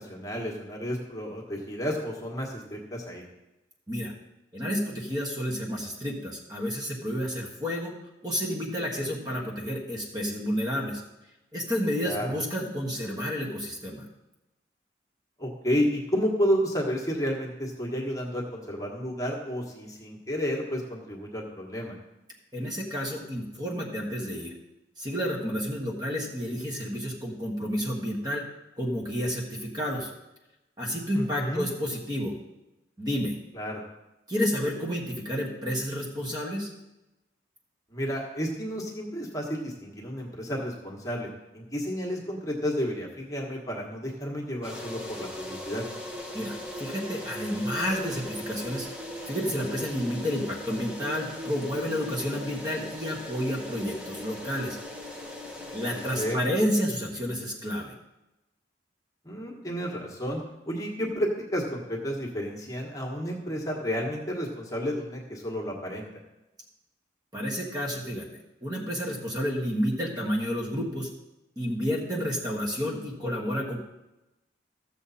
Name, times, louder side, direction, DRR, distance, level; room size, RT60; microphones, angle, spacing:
voice 1, 0.0-3.2 12.0-12.3 15.4-21.9 31.1-31.6 33.5-33.8 37.9-45.8 55.9-56.4 59.2-66.1, equal, 20° left, -1 dB, 1.5 m, -31 dB
voice 2, 4.5-7.9 8.2-11.0 11.5-14.0 22.5-24.5 25.0-28.4 28.8-30.1 30.8-32.4 33.0-33.4 34.3-36.7 46.3-48.9 49.3-54.8 55.7-57.9 67.3-68.3 68.6-71.1 71.6-73.8, equal, 20° right, -1 dB, 1.4 m, -30 dB
sound 1, 44.6-56.4, left 1 dB, 5° right, 1.0 m, -39 dB
14.0 x 7.0 x 4.2 m, 0.99 s
head